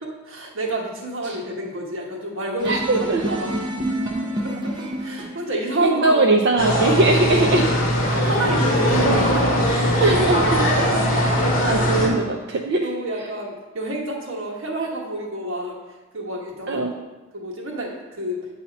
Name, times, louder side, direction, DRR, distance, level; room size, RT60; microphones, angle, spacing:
voice 1, 0.0-3.6 4.4-6.5 7.2-7.6 8.1-9.9 12.8-15.8 16.1-16.9 17.3-18.4, right 1 dB, 80° right, -1 dB, 1.3 m, -28 dB
sound 1, 2.6-5.5, right 1 dB, 20° right, 0.8 m, -28 dB
voice 2, 2.7-3.4 5.8-7.7 10.0-10.7 11.2-13.0 16.7-16.9, right 2 dB, 55° right, 0 dB, 0.4 m, -21 dB
sound 2, 6.6-12.1, equal, 45° left, 1.3 m, -20 dB
8.0 x 2.8 x 5.8 m, 1.2 s
head